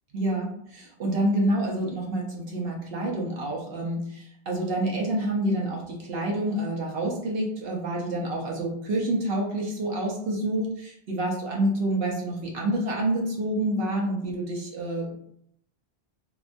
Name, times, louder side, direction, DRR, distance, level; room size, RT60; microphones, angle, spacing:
voice 1, 0.1-15.2, right 1 dB, 70° right, -2 dB, 0.9 m, -28 dB
2.9 x 2.2 x 2.5 m, 0.70 s
omnidirectional pair, 1.0 m